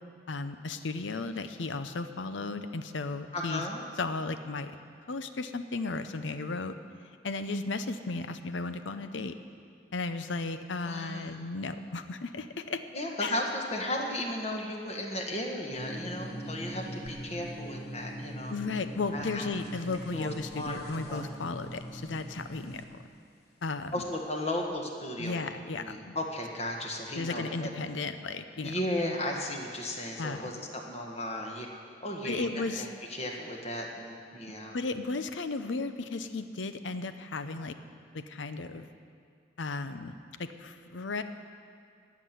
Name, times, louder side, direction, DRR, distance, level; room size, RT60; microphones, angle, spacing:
voice 1, 0.3-3.7 4.0-4.7 5.1-6.7 7.2-9.3 9.9-12.8 13.2-13.4 18.5-23.0 23.6-24.0 25.2-26.2 27.2-28.7 30.2-30.5 32.2-32.9 34.7-37.7 38.1-38.9 39.6-41.2, left 3 dB, 85° left, 10 dB, 0.7 m, -35 dB
voice 2, 3.3-3.8 10.8-11.3 12.9-18.5 19.1-19.5 20.1-20.8 21.1-21.2 23.9-25.5 25.7-27.7 28.6-31.7 32.0-34.8, left 1 dB, 35° left, 0 dB, 1.5 m, -35 dB
sound 1, 15.7-22.8, equal, 60° left, 1.3 m, -42 dB
16.0 x 6.0 x 9.5 m, 2.3 s
head